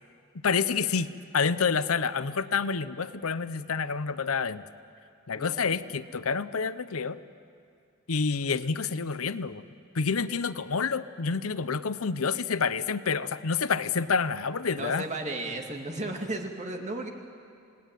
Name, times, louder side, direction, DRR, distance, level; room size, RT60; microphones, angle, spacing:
voice 1, 0.4-4.6 5.3-7.2 8.1-9.6 9.9-15.1, left 5 dB, 75° left, 14 dB, 0.8 m, -28 dB
voice 2, 5.4-5.7 14.7-17.1, right 2 dB, 35° right, 3 dB, 2.4 m, -34 dB
29.0 x 19.0 x 9.1 m, 2.4 s
head